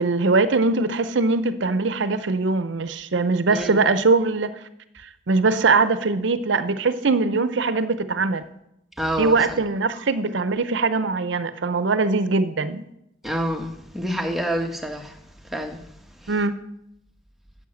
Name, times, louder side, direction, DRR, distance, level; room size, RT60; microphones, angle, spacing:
voice 1, 0.0-4.6 5.3-8.4 9.2-12.8 16.3-16.6, right 3 dB, 65° right, 0.6 m, -21 dB
voice 2, 9.0-9.3 13.2-15.1 15.5-15.8, equal, ahead, 1.0 m, -27 dB
10.5 x 7.8 x 7.5 m
head